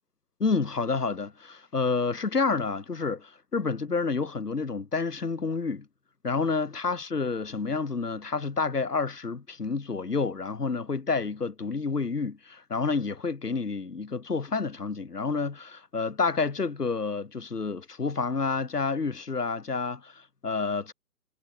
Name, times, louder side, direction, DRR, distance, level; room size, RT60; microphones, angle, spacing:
voice 1, 0.4-5.9 6.2-20.9, left 4 dB, 85° left, 7.7 m, -29 dB
hypercardioid pair, 175°, 46 cm